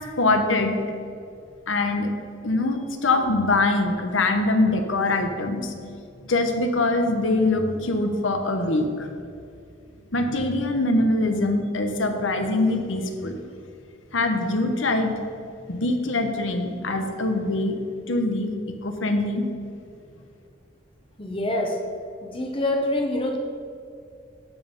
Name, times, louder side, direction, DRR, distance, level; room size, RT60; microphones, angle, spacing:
voice 1, 0.2-0.8 1.7-2.1 2.4-5.7 6.2-9.1 10.1-13.4 14.1-15.1 15.7-17.8 18.1-18.5 18.8-19.4, left 2 dB, 80° left, 6 dB, 1.1 m, -23 dB
voice 2, 21.2-21.8 22.2-23.4, left 1 dB, 25° left, 1 dB, 1.0 m, -25 dB
12.0 x 5.6 x 5.3 m, 2.5 s
head